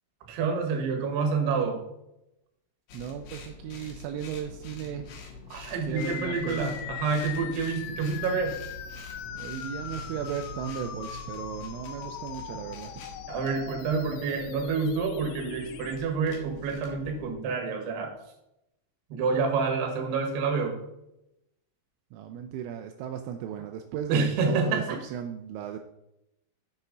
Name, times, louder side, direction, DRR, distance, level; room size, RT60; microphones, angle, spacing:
voice 1, 0.3-1.8 5.5-8.6 13.3-18.1 19.1-20.8 24.1-25.0, right 5 dB, 65° right, 2 dB, 3.1 m, -28 dB
sound 1, 2.9-17.3, left 3 dB, 65° left, 2.7 m, -45 dB
voice 2, 2.9-5.1 5.9-6.7 9.3-13.0 22.1-25.8, right 9 dB, 85° right, 5 dB, 3.1 m, -36 dB
sound 2, 6.0-16.0, left 10 dB, 85° left, 3.2 m, -40 dB
7.8 x 7.1 x 3.9 m, 0.85 s
omnidirectional pair, 5.9 m